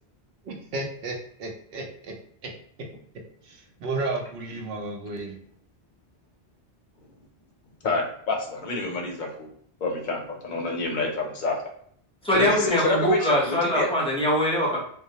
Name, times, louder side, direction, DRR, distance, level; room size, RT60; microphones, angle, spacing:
voice 1, 0.4-2.1 2.4-2.5 3.4-5.4, right 2 dB, 65° right, 1 dB, 0.7 m, -33 dB
voice 2, 7.8-9.5 9.8-11.6 12.3-13.9, left 3 dB, 55° left, 0 dB, 0.6 m, -28 dB
voice 3, 12.2-14.8, equal, 5° left, -5 dB, 0.5 m, -23 dB
2.2 x 2.0 x 2.7 m, 0.63 s
omnidirectional pair, 1.1 m